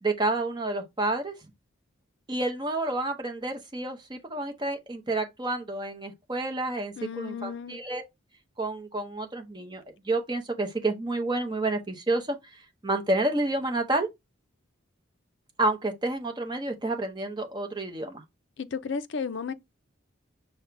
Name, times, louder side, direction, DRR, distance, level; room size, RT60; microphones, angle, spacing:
voice 1, 0.0-1.3 2.3-8.0 8.6-14.1 15.6-18.2, right 2 dB, 20° right, 0.8 m, -29 dB
voice 2, 7.0-7.8 18.6-19.5, left 5 dB, 60° left, 0.4 m, -33 dB
5.5 x 2.2 x 4.5 m
head